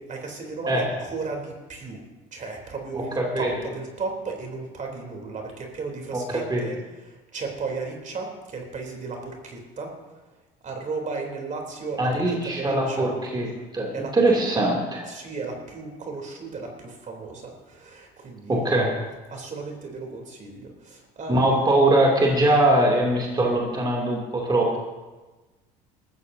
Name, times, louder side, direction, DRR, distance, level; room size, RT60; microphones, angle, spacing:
voice 1, 0.0-2.0 2.3-6.8 7.1-9.9 10.6-12.1 12.4-13.1 13.9-14.4 15.1-18.8 19.3-21.6, right 4 dB, 40° right, 2 dB, 3.5 m, -35 dB
voice 2, 2.9-3.5 6.1-6.7 12.0-13.5 13.7-15.1 18.5-19.0 21.3-24.8, right 1 dB, 20° right, -1 dB, 2.9 m, -22 dB
19.5 x 14.0 x 2.8 m, 1.2 s
hypercardioid pair, 75°, 19 cm